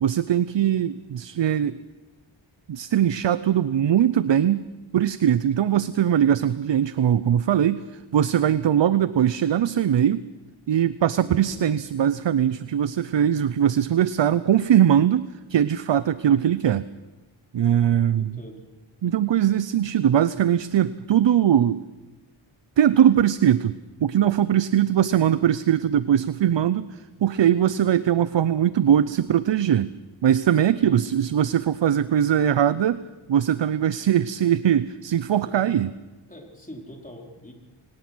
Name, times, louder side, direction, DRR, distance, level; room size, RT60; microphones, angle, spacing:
voice 1, 0.0-1.8 2.7-4.7 4.9-10.2 10.7-16.9 17.5-18.3 19.0-21.8 22.8-29.9 30.2-33.0 33.3-35.9, right 10 dB, 60° right, 15 dB, 0.7 m, -21 dB
voice 2, 11.2-11.7 18.1-18.6 30.6-31.0 35.4-35.8 36.3-37.5, equal, 15° left, 0 dB, 4.7 m, -42 dB
25.0 x 18.5 x 6.2 m, 1.1 s
wide cardioid pair, 70°, 49 cm